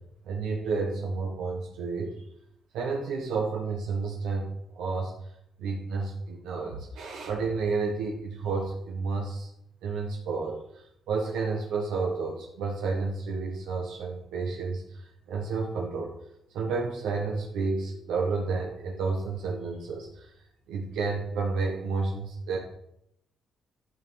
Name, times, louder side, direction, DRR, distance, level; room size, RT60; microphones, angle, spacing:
voice 1, 0.2-2.1 2.7-4.5 4.7-5.1 5.6-9.5 9.8-10.6 11.1-15.0 15.3-16.1 16.5-20.2 20.7-22.6, right 4 dB, 85° right, -2 dB, 1.5 m, -30 dB
10.5 x 3.9 x 6.3 m, 0.76 s
cardioid pair, 90°, 0 cm